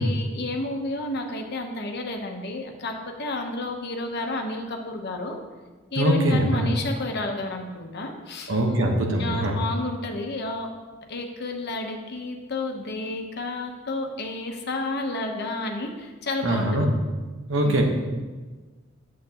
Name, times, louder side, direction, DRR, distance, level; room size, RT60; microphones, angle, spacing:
voice 1, 0.0-5.4 5.9-8.5 9.2-10.7 11.1-16.8 17.6-17.8, left 2 dB, 55° left, 3 dB, 0.9 m, -31 dB
voice 2, 6.0-6.7 8.5-9.6 16.4-16.9 17.5-17.8, right 1 dB, 65° right, 2 dB, 1.2 m, -22 dB
8.4 x 7.3 x 2.9 m, 1.3 s
head